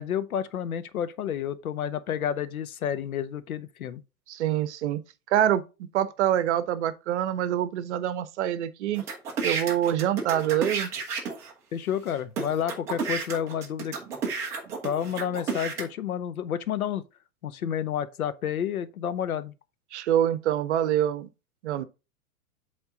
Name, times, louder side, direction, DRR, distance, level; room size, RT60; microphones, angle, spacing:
voice 1, 0.0-4.0 11.7-14.0 14.8-17.1 17.4-19.5, left 9 dB, 70° left, 0.8 m, -30 dB
voice 2, 4.3-5.0 5.3-9.1 9.4-10.9 19.9-21.3 21.6-21.8, right 11 dB, 50° right, 0.8 m, -25 dB
sound 1, 9.0-11.5 12.1-12.2 12.4-15.8, right 5 dB, 5° right, 0.3 m, -31 dB
8.0 x 3.6 x 3.7 m
figure-of-eight pair, 105°, 44 cm